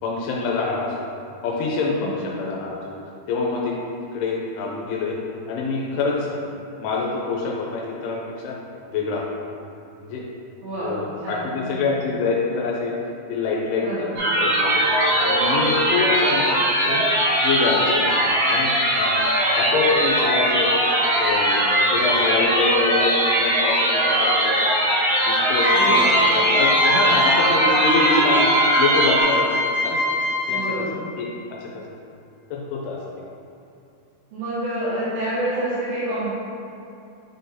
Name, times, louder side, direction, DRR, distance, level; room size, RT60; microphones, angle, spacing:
voice 1, 0.0-1.1 1.4-2.9 3.3-3.7 4.1-5.2 5.5-8.6 8.8-9.2 10.0-10.2 10.8-12.9 13.3-14.1 14.4-14.9 15.2-16.6 16.9-17.1 17.4-19.2 19.6-20.7 21.1-23.1 23.4-24.4 25.3-28.5 28.8-29.5 29.8-30.0 30.5-30.6 31.2-31.8 32.5-33.0, left 4 dB, 85° left, -3 dB, 2.6 m, -26 dB
voice 2, 10.6-11.9 13.8-14.2 25.7-26.6 26.9-27.3 30.5-31.0 34.3-36.3, right 1 dB, 70° right, -13 dB, 3.0 m, -29 dB
sound 1, 14.2-29.2, right 1 dB, 90° right, 3.8 m, -20 dB
sound 2, 25.6-30.8, equal, 55° left, 1.8 m, -22 dB
9.2 x 3.7 x 2.7 m, 2.5 s
omnidirectional pair, 4.7 m